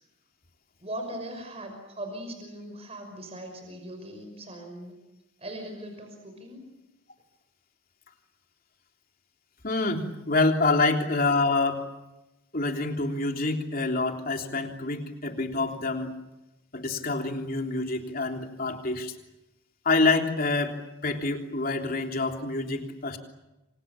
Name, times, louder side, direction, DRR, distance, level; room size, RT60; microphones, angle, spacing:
voice 1, 0.8-4.9 5.4-6.7, right 1 dB, 30° right, 4 dB, 5.6 m, -39 dB
voice 2, 9.6-11.8 12.5-16.1 16.7-19.1 19.9-23.2, left 3 dB, 45° left, 3 dB, 3.5 m, -27 dB
28.5 x 26.0 x 7.2 m, 0.96 s
head